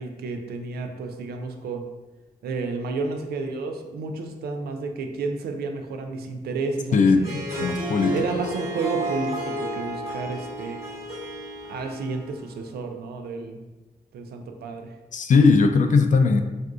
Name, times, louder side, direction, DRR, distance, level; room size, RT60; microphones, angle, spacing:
voice 1, 0.0-1.8 2.4-7.3 7.6-7.7 8.1-10.8 11.7-13.6 14.1-15.0, right 4 dB, 80° right, 5 dB, 0.4 m, -31 dB
voice 2, 6.9-8.2 15.1-16.4, left 4 dB, 50° left, 7 dB, 0.4 m, -19 dB
Harp, 7.1-12.5, right 1 dB, 40° right, 1.3 m, -32 dB
2.5 x 2.3 x 3.6 m, 1.1 s
supercardioid pair, 55°, 16 cm